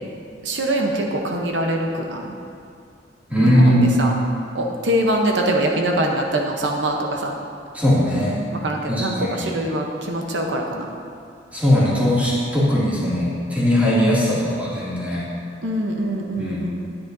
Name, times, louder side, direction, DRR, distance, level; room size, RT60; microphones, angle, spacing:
voice 1, 0.4-2.3 3.4-4.1 4.5-7.3 8.6-10.9 15.6-16.7, right 1 dB, 80° right, 1 dB, 0.8 m, -23 dB
voice 2, 3.3-4.0 7.7-8.4 8.9-9.5 11.5-15.3 16.4-16.7, equal, 10° right, -9 dB, 2.3 m, -19 dB
10.5 x 10.0 x 2.6 m, 2.5 s
head